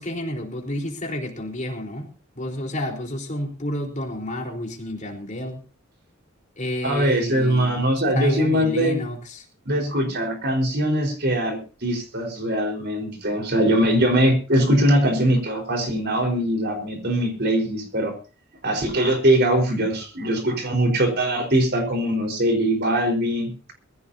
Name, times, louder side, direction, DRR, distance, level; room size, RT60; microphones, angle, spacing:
voice 1, 0.0-2.1 2.4-5.6 6.6-7.9 8.1-9.5, left 1 dB, 35° left, 2 dB, 4.2 m, -30 dB
voice 2, 6.8-9.0 9.6-18.2 18.6-23.5, right 1 dB, 50° right, 4 dB, 4.7 m, -21 dB
22.0 x 15.5 x 2.8 m, 0.34 s
head